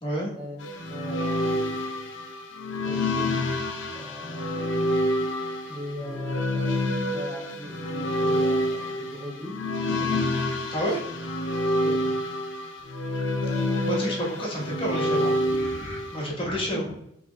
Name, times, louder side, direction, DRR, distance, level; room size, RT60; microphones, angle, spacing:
sound 1, 0.6-16.3, left 1 dB, 75° left, 0.6 m, -28 dB
voice 1, 0.9-1.7 2.8-3.4 3.9-4.9 5.7-11.1 11.8-12.2 13.4-14.4 16.6-16.9, equal, 5° right, -6 dB, 0.5 m, -40 dB
voice 2, 13.8-16.8, equal, 25° left, -4 dB, 1.2 m, -30 dB
5.0 x 3.4 x 2.2 m, 0.76 s
head